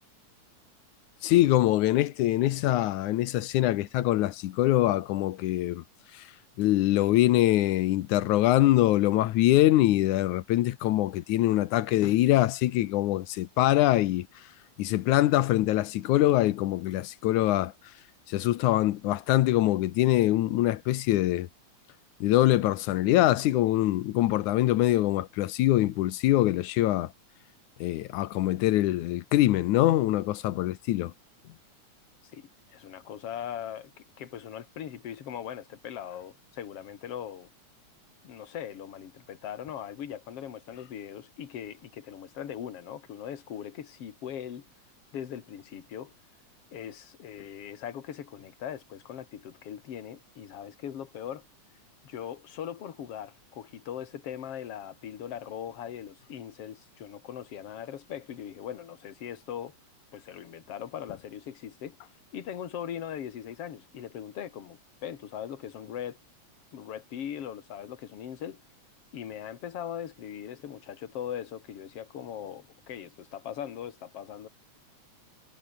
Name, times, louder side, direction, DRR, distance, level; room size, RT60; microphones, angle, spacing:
voice 1, 1.2-5.8 6.1-6.3 6.6-14.5 14.8-17.7 18.3-21.5 22.2-27.1 27.8-31.1, left 15 dB, 90° left, 2.4 m, -24 dB
voice 2, 32.3-33.9 34.2-37.5 38.2-44.7 45.1-46.1 46.7-51.5 52.0-59.8 60.1-62.0 62.3-66.2 66.7-68.6 69.1-74.5, left 9 dB, 55° left, 2.8 m, -40 dB
omnidirectional pair, 3.3 m